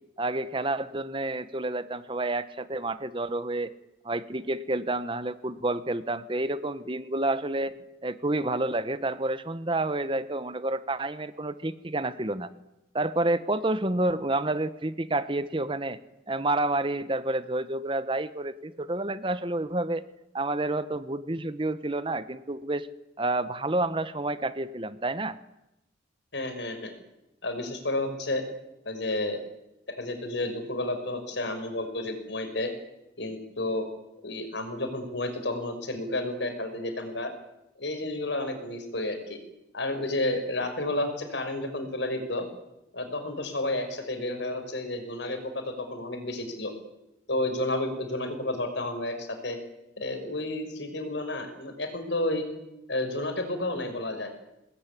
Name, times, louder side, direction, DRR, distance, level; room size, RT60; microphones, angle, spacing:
voice 1, 0.2-3.7 4.0-7.7 8.0-12.5 12.9-16.0 16.3-20.0 20.3-22.9 23.2-25.4, right 2 dB, 25° right, 13 dB, 1.0 m, -29 dB
voice 2, 26.3-26.9 27.4-28.4 28.9-29.4 29.9-32.7 33.2-33.9 34.2-37.3 37.8-39.4 39.7-42.4 42.9-46.7 47.3-49.6 50.0-52.4 52.9-54.3, left 2 dB, 70° left, 7 dB, 5.4 m, -31 dB
23.0 x 20.0 x 9.9 m, 0.92 s
head